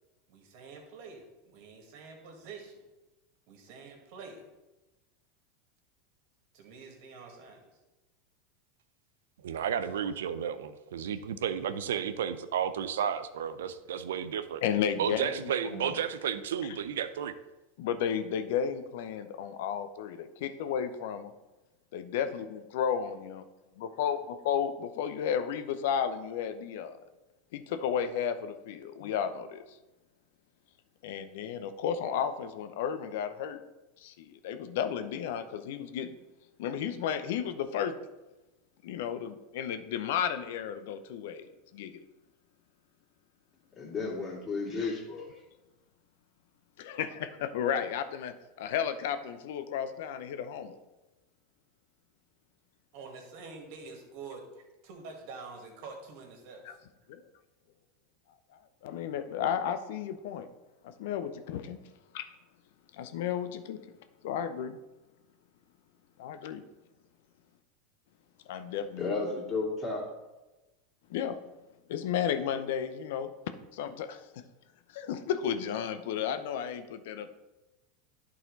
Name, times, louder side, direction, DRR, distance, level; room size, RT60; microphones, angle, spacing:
voice 1, 0.3-2.8 3.5-4.4 6.5-7.7 52.9-56.6, right 4 dB, 60° right, 2 dB, 1.9 m, -47 dB
voice 2, 9.4-14.6 15.0-17.3, right 8 dB, 80° right, 12 dB, 0.5 m, -32 dB
voice 3, 14.6-16.0 17.8-21.3 21.9-23.4 23.8-24.2 24.4-27.0 27.5-29.6 31.0-33.6 34.0-36.1 36.6-38.0 38.8-41.5 41.7-42.0 46.8-50.8 57.1-57.2 58.8-60.5 60.8-61.8 63.0-63.9 64.2-64.8 66.2-66.6 68.5-69.1 71.1-71.4 71.9-73.3 73.7-74.3 74.9-77.3, left 8 dB, 70° left, 11 dB, 0.6 m, -33 dB
voice 4, 43.8-45.3 69.0-70.0, left 3 dB, 30° left, -2 dB, 2.6 m, -33 dB
11.0 x 4.1 x 4.0 m, 1.1 s
hypercardioid pair, 95°, 0 cm